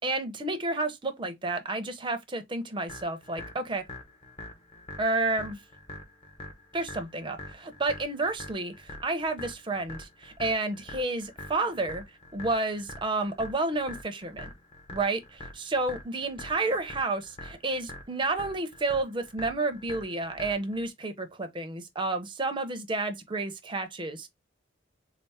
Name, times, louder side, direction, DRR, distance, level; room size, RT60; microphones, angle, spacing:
voice 1, 0.0-3.8 5.0-5.6 6.7-12.0 12.3-14.5 14.9-24.3, right 2 dB, 25° right, 0.6 m, -30 dB
sound 1, 2.9-20.9, left 2 dB, 30° left, 0.9 m, -45 dB
4.2 x 2.0 x 3.3 m
head